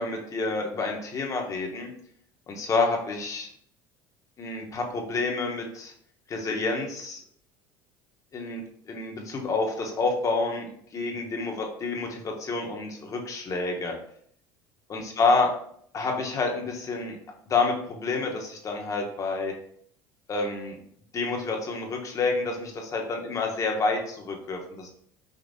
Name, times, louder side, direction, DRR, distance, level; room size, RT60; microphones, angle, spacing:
voice 1, 0.0-1.9 2.5-3.5 4.4-5.9 6.3-7.2 8.3-13.9 14.9-15.5 15.9-17.2 17.5-19.5 20.3-20.8 21.1-24.9, left 3 dB, 35° left, 2 dB, 0.9 m, -28 dB
5.1 x 2.8 x 2.6 m, 0.65 s
supercardioid pair, 100°, 10 cm